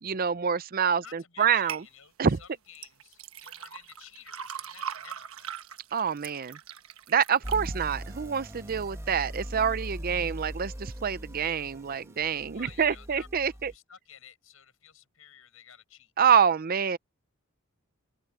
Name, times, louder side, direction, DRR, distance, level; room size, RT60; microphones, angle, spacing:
voice 1, 0.0-1.8 2.2-2.4 5.9-6.6 7.1-13.7 16.2-17.0, right 7 dB, 45° right, 0.5 m, -26 dB
voice 2, 0.9-5.5 12.5-16.1, left 8 dB, 75° left, 6.2 m, -53 dB
sound 1, 1.7-1.9 2.8-8.9 9.3-9.9 10.3-10.4, right 8 dB, 85° right, 1.2 m, -41 dB
sound 2, 7.4-13.8, equal, 15° right, 1.2 m, -40 dB
head